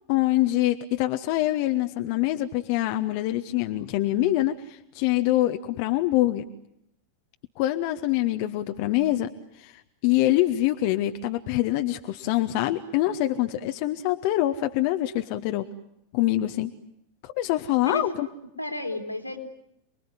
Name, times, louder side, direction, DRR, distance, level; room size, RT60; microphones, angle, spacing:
voice 1, 0.1-6.5 7.6-9.3 9.6-15.6 16.1-16.7 17.2-18.3, left 15 dB, 45° left, 8 dB, 1.1 m, -25 dB
voice 2, 17.8-18.3 18.6-19.4, left 2 dB, 90° left, 6 dB, 3.4 m, -32 dB
28.5 x 21.5 x 9.7 m, 0.78 s
figure-of-eight pair, 90°, 0 cm